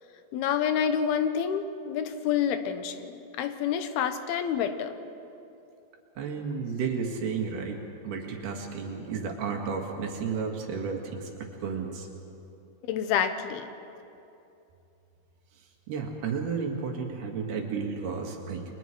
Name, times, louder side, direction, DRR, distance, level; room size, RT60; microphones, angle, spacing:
voice 1, 0.3-4.9 12.9-13.7, left 8 dB, 90° left, 9 dB, 3.0 m, -28 dB
voice 2, 6.2-7.8 8.0-12.1 15.9-18.6, right 5 dB, 85° right, 2 dB, 4.1 m, -32 dB
30.0 x 23.5 x 4.6 m, 2.7 s
omnidirectional pair, 4.3 m